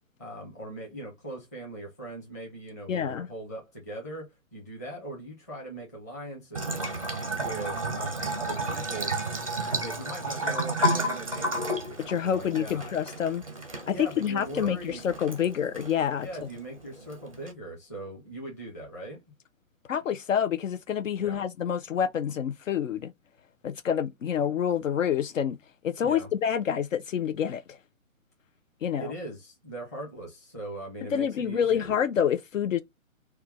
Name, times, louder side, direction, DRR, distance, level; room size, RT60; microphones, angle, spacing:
voice 1, 0.2-6.9 7.4-9.1 9.7-12.9 13.8-15.1 16.2-19.2 21.2-21.4 26.0-26.3 28.9-31.9, right 1 dB, 10° left, 0.7 m, -40 dB
voice 2, 2.9-3.3 12.1-13.4 13.9-16.3 19.9-23.1 23.6-25.6 25.8-27.8 28.8-29.1 31.1-32.8, left 8 dB, 65° left, 0.5 m, -27 dB
Bathtub (filling or washing) / Trickle dribble, 6.5-17.5, right 1 dB, 25° right, 0.5 m, -32 dB
4.4 x 2.2 x 3.4 m
hypercardioid pair, 170°, 42 cm